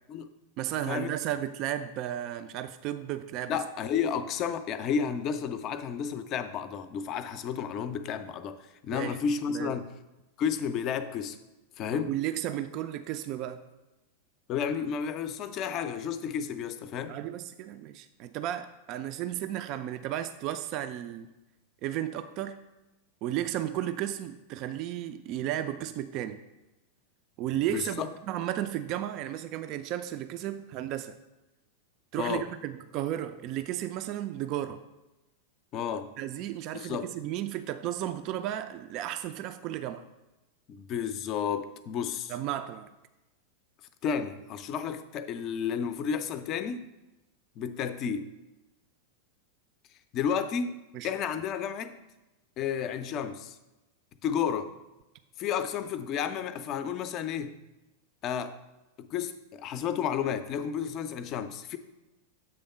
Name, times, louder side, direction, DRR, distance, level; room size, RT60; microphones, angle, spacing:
voice 1, 0.6-3.6 8.9-9.2 9.5-9.7 11.9-13.6 17.1-21.3 21.8-22.6 23.2-26.4 27.4-31.1 32.1-34.8 36.2-40.0 42.3-42.9 50.9-51.1, right 12 dB, 40° right, 10 dB, 0.3 m, -34 dB
voice 2, 3.5-9.9 10.4-11.4 11.8-12.1 14.5-17.2 27.7-28.1 32.2-32.5 35.7-36.1 36.7-37.1 40.7-42.3 44.0-46.8 47.6-48.3 50.1-50.8 51.0-52.0 52.6-53.6 54.2-54.7 55.4-57.6 58.2-58.6 59.0-61.8, left 7 dB, 35° left, 11 dB, 0.5 m, -32 dB
7.8 x 3.5 x 5.4 m, 1.0 s
figure-of-eight pair, 90°, 0 cm